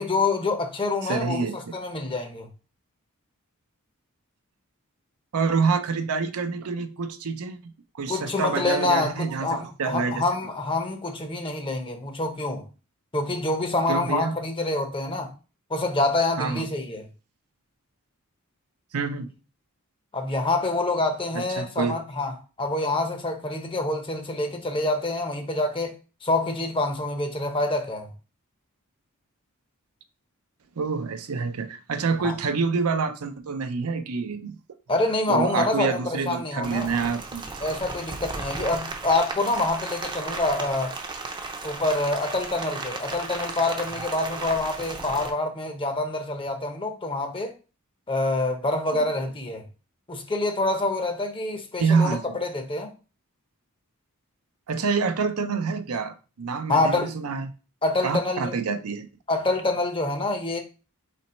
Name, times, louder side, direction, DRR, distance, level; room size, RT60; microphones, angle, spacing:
voice 1, 0.0-2.5 8.1-12.6 13.1-15.3 15.7-17.0 20.1-25.9 26.2-28.1 32.2-32.3 34.9-37.0 37.6-41.0 41.6-47.5 48.1-49.6 50.1-52.9 56.7-57.1 57.8-58.6 59.3-60.6, left 2 dB, 25° left, 0.7 m, -26 dB
voice 2, 1.0-1.7 5.3-10.2 13.9-14.4 16.4-16.6 18.9-19.3 21.3-22.0 30.8-34.6 35.3-37.4 48.9-49.1 51.8-52.2 54.7-57.5 58.0-59.1, right 5 dB, 80° right, 0.5 m, -27 dB
Rain, 36.6-45.3, right 3 dB, 20° right, 0.6 m, -35 dB
4.2 x 3.0 x 4.2 m
head